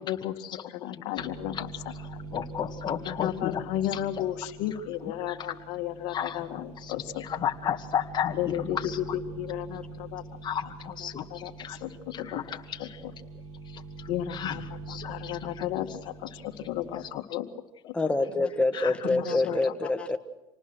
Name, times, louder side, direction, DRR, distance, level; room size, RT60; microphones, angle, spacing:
voice 1, 0.0-0.3 0.6-1.7 3.0-7.2 8.4-10.2 11.0-12.4 12.8-13.1 14.1-14.6 14.9-17.5 17.8-17.9 19.0-20.1, left 12 dB, 65° left, 6 dB, 2.0 m, -34 dB
sound 1, 1.2-17.1, right 3 dB, 70° right, 3.7 m, -44 dB
voice 2, 2.0-3.7 3.9-4.3 5.0-5.4 6.1-6.5 6.8-6.9 7.2-9.0 10.4-11.8 12.1-13.0 13.7-14.6 14.9-15.6 18.7-19.4, left 9 dB, 35° left, 5 dB, 2.2 m, -34 dB
voice 3, 17.9-20.2, left 2 dB, 10° left, 6 dB, 1.7 m, -26 dB
27.5 x 19.0 x 6.3 m, 1.0 s
supercardioid pair, 115°, 13 cm